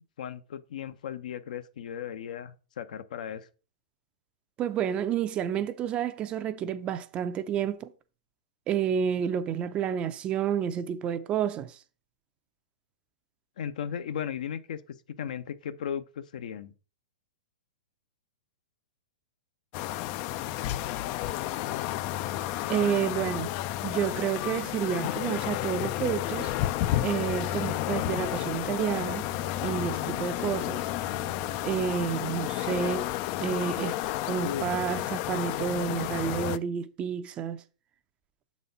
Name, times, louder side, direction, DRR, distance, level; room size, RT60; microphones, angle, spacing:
voice 1, 0.2-3.5 13.6-16.7 34.4-34.7, left 8 dB, 70° left, 0.7 m, -36 dB
voice 2, 4.6-7.9 8.7-11.8 22.7-23.5 23.8-26.5 27.0-29.3 29.6-30.8 31.6-33.1 33.4-34.0 34.3-37.6, right 8 dB, 25° right, 0.5 m, -30 dB
sound 1, 19.7-36.6, left 14 dB, 40° left, 0.3 m, -31 dB
sound 2, 26.9-32.2, right 6 dB, 90° right, 0.9 m, -48 dB
6.9 x 4.2 x 5.2 m
hypercardioid pair, 135°, 4 cm